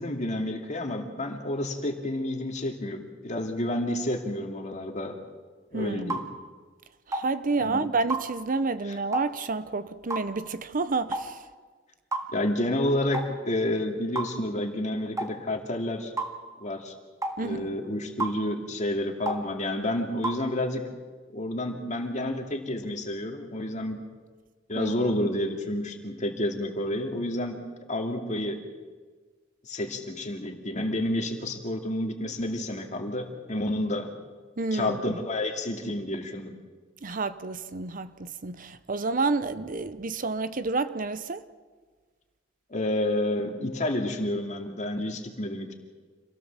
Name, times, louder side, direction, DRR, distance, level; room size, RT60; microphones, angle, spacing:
voice 1, 0.0-5.2 5.7-6.3 7.6-7.9 8.9-9.0 12.3-16.1 16.6-16.9 17.4-20.9 21.3-24.0 24.7-27.6 27.9-28.6 29.7-34.1 34.7-36.6 42.7-45.7, left 1 dB, 40° left, 2.5 m, -30 dB
voice 2, 5.7-6.2 7.1-11.4 17.4-17.8 24.7-24.9 34.6-35.2 37.0-41.5, right 3 dB, 45° right, 0.8 m, -29 dB
sound 1, 6.1-6.3 7.1-7.3 8.1-8.3 9.1-9.3 10.1-10.3 11.1-11.3 12.1-12.3 13.1-13.3 14.1-14.3 15.2-15.3 16.2-16.3 17.2-17.4 18.2-18.4 19.3-19.4 20.2-20.4, right 2 dB, 15° right, 1.8 m, -30 dB
26.5 x 17.0 x 7.4 m
head